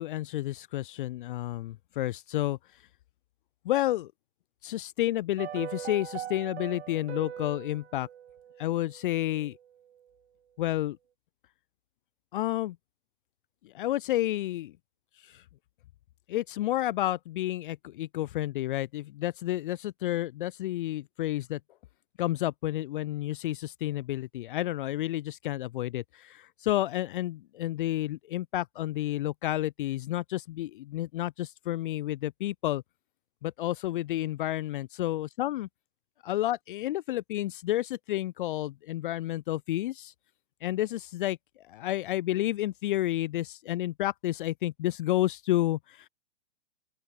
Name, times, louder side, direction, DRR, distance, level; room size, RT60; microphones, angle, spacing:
voice 1, 0.0-2.6 3.7-4.1 4.6-8.1 8.6-9.6 10.6-11.0 12.3-12.8 13.6-14.7 15.3-15.4 16.3-21.6 22.2-32.8 33.4-35.7 36.3-40.1 40.6-41.4 41.7-46.1, left 15 dB, 50° left, 0.4 m, -30 dB
sound 1, 5.4-9.7 9.9-10.0, right 10 dB, 65° right, 1.5 m, -41 dB
open air
figure-of-eight pair, 110°, 35 cm